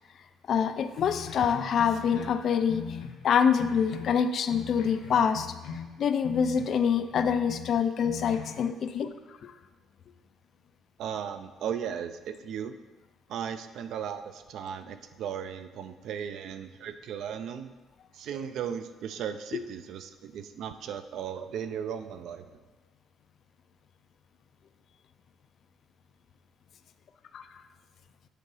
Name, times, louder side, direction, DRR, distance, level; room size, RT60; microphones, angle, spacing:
voice 1, 0.5-3.0 3.2-9.5 19.5-19.6 27.3-27.6, left 7 dB, 45° left, 10 dB, 0.4 m, -26 dB
sound 1, 0.9-6.8 7.1-8.6, left 6 dB, 90° left, 0.8 m, -41 dB
voice 2, 11.0-12.7 13.3-17.7 18.1-22.5, right 8 dB, 60° right, 10 dB, 0.4 m, -36 dB
8.2 x 3.8 x 5.5 m, 1.3 s
cardioid pair, 165°, 0 cm